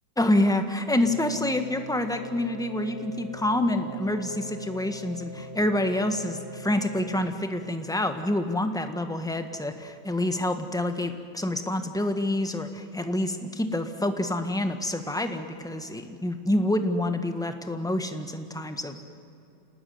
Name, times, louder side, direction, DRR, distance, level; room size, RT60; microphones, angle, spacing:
voice 1, 0.2-19.0, left 1 dB, ahead, 7 dB, 1.3 m, -27 dB
sound 1, 1.0-7.3, left 1 dB, 30° left, 2.6 m, -42 dB
28.5 x 19.0 x 9.5 m, 2.6 s
omnidirectional pair, 1.9 m